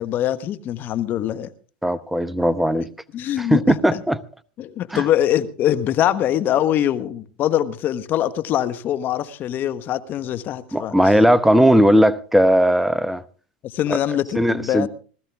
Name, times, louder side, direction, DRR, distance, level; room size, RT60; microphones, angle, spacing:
voice 1, 0.0-1.5 3.1-4.0 4.6-10.9 13.6-14.9, left 11 dB, 45° left, 1.1 m, -23 dB
voice 2, 1.8-2.9 3.4-4.2 4.9-5.0 10.7-13.2 13.9-14.0 14.3-14.9, equal, 5° right, 0.8 m, -17 dB
19.5 x 13.5 x 3.5 m
hypercardioid pair, 105°, 5 cm